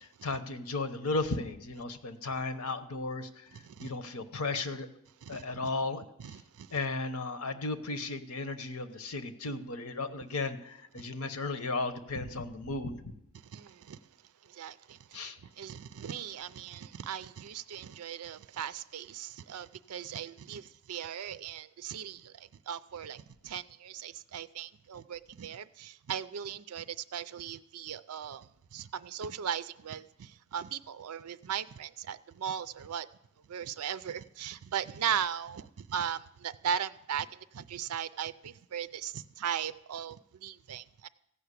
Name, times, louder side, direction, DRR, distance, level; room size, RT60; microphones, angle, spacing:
voice 1, 0.0-3.5 3.8-4.9 5.3-6.0 6.7-13.0 15.1-15.4, left 3 dB, 75° left, 1.0 m, -35 dB
voice 2, 6.2-6.8 11.0-11.1 13.4-14.0 14.4-33.1 33.5-41.1, right 8 dB, 85° right, 0.4 m, -38 dB
15.0 x 5.8 x 8.3 m
head